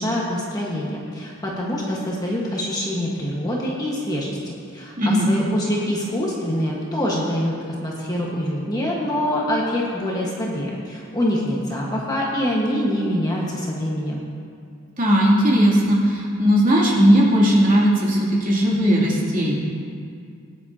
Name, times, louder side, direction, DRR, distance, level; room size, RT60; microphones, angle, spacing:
voice 1, 0.0-7.5 7.8-14.2, equal, 20° left, -4 dB, 1.4 m, -25 dB
voice 2, 5.0-5.3 15.0-19.5, equal, 40° right, -6 dB, 2.8 m, -17 dB
19.0 x 10.0 x 2.8 m, 2.3 s
head